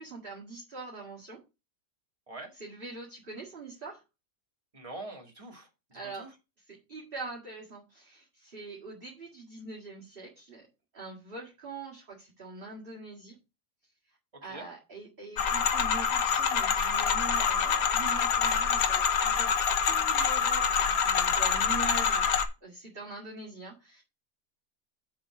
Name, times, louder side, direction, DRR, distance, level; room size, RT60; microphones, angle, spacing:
voice 1, 0.0-1.4 2.5-4.0 5.9-6.3 6.7-10.7 10.9-13.4 14.1-22.3 22.6-24.0, right 3 dB, 40° right, -4 dB, 2.3 m, -43 dB
voice 2, 4.7-6.3 14.4-14.7, right 2 dB, 25° right, 1 dB, 2.4 m, -44 dB
sound 1, 15.4-22.5, left 6 dB, 85° left, 1.4 m, -26 dB
7.5 x 4.7 x 6.1 m, 0.27 s
omnidirectional pair, 1.5 m